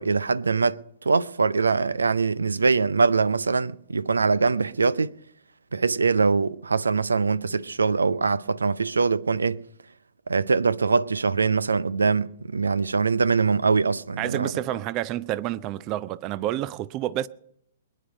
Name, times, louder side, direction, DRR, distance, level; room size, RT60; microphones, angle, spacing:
voice 1, 0.0-5.1 5.7-9.6 10.3-14.5, right 4 dB, 75° right, 0.5 m, -23 dB
voice 2, 14.2-17.3, right 14 dB, 30° right, 0.6 m, -29 dB
21.5 x 10.0 x 5.3 m
figure-of-eight pair, 115°, 0 cm